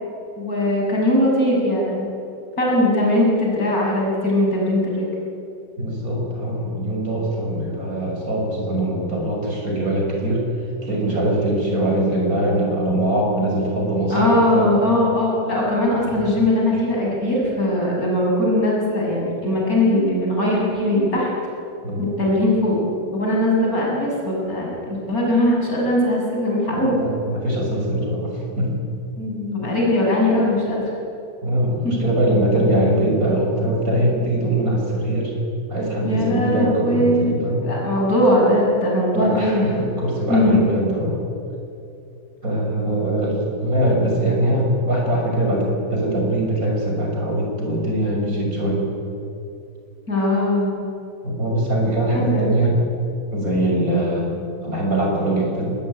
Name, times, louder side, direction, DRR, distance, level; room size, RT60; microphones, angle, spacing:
voice 1, 0.4-2.1 2.6-5.1 14.1-21.3 22.0-22.8 23.1-27.0 29.2-30.8 31.8-31.9 36.0-39.7 40.3-40.6 50.1-50.8 52.1-52.5, left 1 dB, 45° left, -3 dB, 7.2 m, -20 dB
voice 2, 5.8-10.4 10.8-14.7 16.0-16.2 21.8-22.1 26.7-28.8 31.4-35.3 35.7-37.7 39.1-41.2 42.4-48.8 51.2-52.8 53.3-55.7, right 1 dB, 45° right, -1 dB, 6.5 m, -22 dB
23.5 x 20.0 x 9.8 m, 2.7 s
omnidirectional pair, 2.1 m